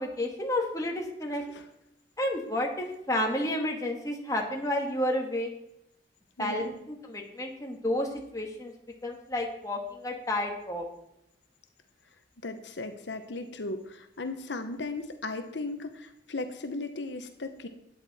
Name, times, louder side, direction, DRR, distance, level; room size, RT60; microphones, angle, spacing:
voice 1, 0.0-1.4 2.2-5.5 6.4-8.7 9.0-10.9, left 1 dB, 20° left, 1 dB, 1.7 m, -31 dB
voice 2, 6.4-6.8 12.4-17.7, left 2 dB, 80° left, 7 dB, 0.9 m, -36 dB
11.5 x 9.1 x 4.2 m, 0.82 s
head